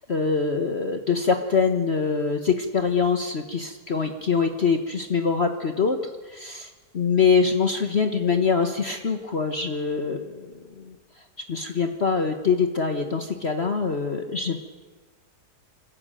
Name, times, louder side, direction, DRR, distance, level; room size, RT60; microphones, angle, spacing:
voice 1, 0.1-11.0 11.5-14.6, left 5 dB, 40° left, 5 dB, 1.4 m, -24 dB
25.5 x 15.5 x 9.1 m, 1.2 s
omnidirectional pair, 1.8 m